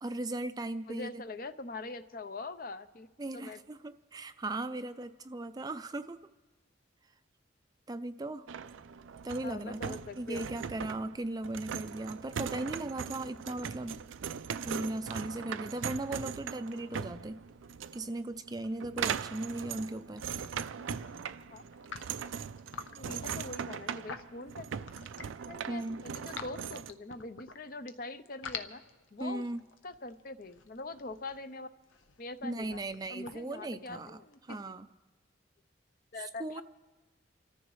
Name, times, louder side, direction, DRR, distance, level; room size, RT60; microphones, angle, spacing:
voice 1, 0.0-1.2 3.2-6.2 7.9-8.5 9.2-14.0 14.6-17.4 17.9-20.2 25.7-26.0 29.2-29.6 32.4-34.2 34.5-34.9 36.4-36.6, right 2 dB, 20° right, 11 dB, 0.4 m, -37 dB
voice 2, 0.9-3.1 3.3-3.6 9.4-10.5 21.5-21.7 23.0-24.7 25.5-28.8 29.1-29.5 29.8-31.7 32.2-32.8 33.1-34.6 36.1-36.6, left 2 dB, 45° left, 11 dB, 0.6 m, -43 dB
sound 1, 8.5-26.9, right 7 dB, 80° right, 0.4 m, -40 dB
sound 2, 20.0-20.2 20.4-21.1 21.7-25.4 25.8-27.9 28.2-34.3, left 6 dB, 80° left, 0.8 m, -47 dB
29.5 x 14.0 x 3.1 m, 1.2 s
head